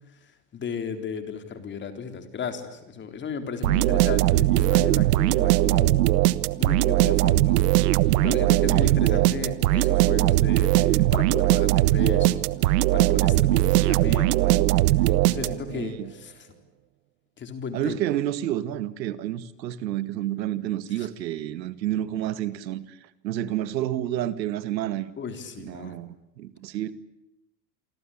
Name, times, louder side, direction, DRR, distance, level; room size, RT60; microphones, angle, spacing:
voice 1, 0.2-6.0 6.6-7.6 8.2-14.6 15.0-16.5 17.4-18.0 20.9-21.1 25.2-26.0, left 6 dB, 20° left, 3.8 m, -35 dB
sound 1, 3.6-15.8, right 17 dB, 65° right, 1.3 m, -20 dB
voice 2, 3.6-4.0 8.5-9.3 15.7-16.1 17.7-25.1 25.6-26.9, right 12 dB, 85° right, 2.1 m, -30 dB
28.5 x 24.5 x 8.6 m
supercardioid pair, 145°, 50 cm